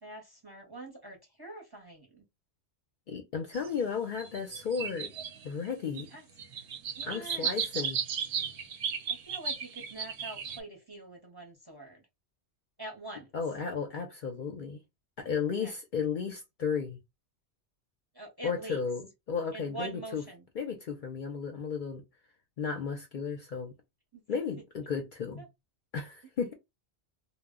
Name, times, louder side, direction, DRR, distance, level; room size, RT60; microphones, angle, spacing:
voice 1, 0.0-2.2 5.9-6.3 6.5-7.9 9.1-12.0 12.8-13.3 15.5-15.7 18.1-18.8 19.5-20.5 24.1-24.4 25.4-25.5, right 2 dB, 25° right, 0.6 m, -45 dB
voice 2, 3.1-5.1 5.4-6.1 7.0-8.0 13.3-14.8 15.2-17.0 18.4-19.0 19.3-20.2 20.6-22.0 22.6-23.7 24.3-25.4 25.9-26.5, left 6 dB, 60° left, 0.6 m, -34 dB
sound 1, 3.5-3.7 4.2-5.7 6.0-6.1 6.4-10.6, right 7 dB, 65° right, 0.7 m, -35 dB
2.0 x 2.0 x 3.5 m
omnidirectional pair, 1.1 m